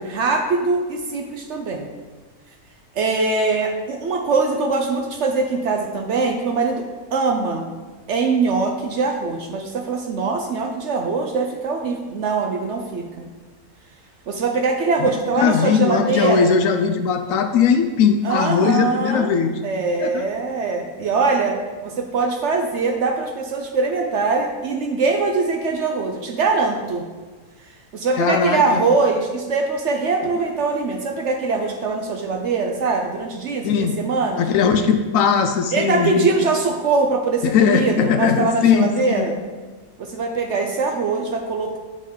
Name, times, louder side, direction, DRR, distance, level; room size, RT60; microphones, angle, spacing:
voice 1, 0.1-1.9 2.9-6.8 7.1-7.7 8.1-13.3 14.3-16.5 18.2-19.3 19.6-27.0 27.9-34.4 35.7-39.3 40.0-41.8, right 4 dB, 60° right, 3 dB, 0.8 m, -22 dB
voice 2, 15.4-19.6 20.0-20.3 28.2-28.8 33.6-34.0 34.4-36.3 37.4-39.3, left 6 dB, 70° left, 6 dB, 0.9 m, -19 dB
7.2 x 5.3 x 3.7 m, 1.3 s
omnidirectional pair, 1.6 m